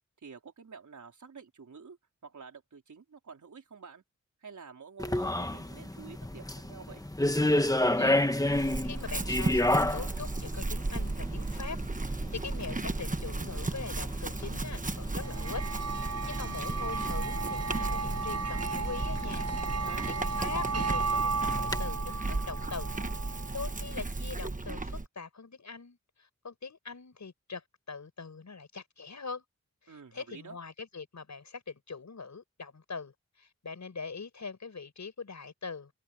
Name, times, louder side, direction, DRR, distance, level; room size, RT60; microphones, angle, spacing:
voice 1, 0.2-4.0 4.4-7.0 19.7-20.1 29.9-30.6, right 5 dB, 90° right, 4.3 m, -49 dB
sound 1, 5.0-21.8, left 1 dB, 10° left, 1.3 m, -33 dB
voice 2, 8.0-15.7 15.9-19.5 19.8-22.9 23.5-29.4 29.8-35.9, left 4 dB, 75° left, 6.4 m, -42 dB
Chewing mastication / Livestock farm animals working animals, 8.5-25.1, right 3 dB, 25° right, 1.2 m, -35 dB
sound 2, 15.2-23.8, right 4 dB, 55° right, 0.9 m, -35 dB
wide cardioid pair, 70°, 29 cm